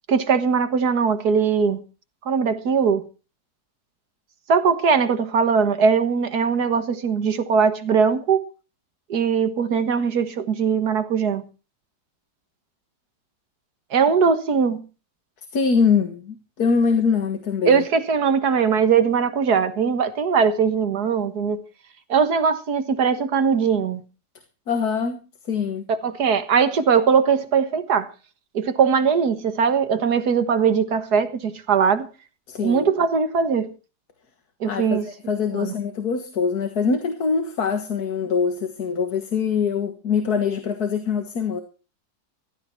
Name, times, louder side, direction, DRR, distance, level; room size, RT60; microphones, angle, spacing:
voice 1, 0.1-1.8 2.3-3.0 4.5-8.5 9.1-11.4 13.9-14.8 17.7-21.6 22.1-24.0 25.9-28.1 28.5-32.1 32.6-33.7 34.6-35.1 35.5-35.7, right 6 dB, 85° right, 2.0 m, -20 dB
voice 2, 15.5-17.8 24.7-25.9 32.5-33.0 34.7-41.6, left 5 dB, 75° left, 2.1 m, -23 dB
16.0 x 12.5 x 4.5 m
omnidirectional pair, 1.6 m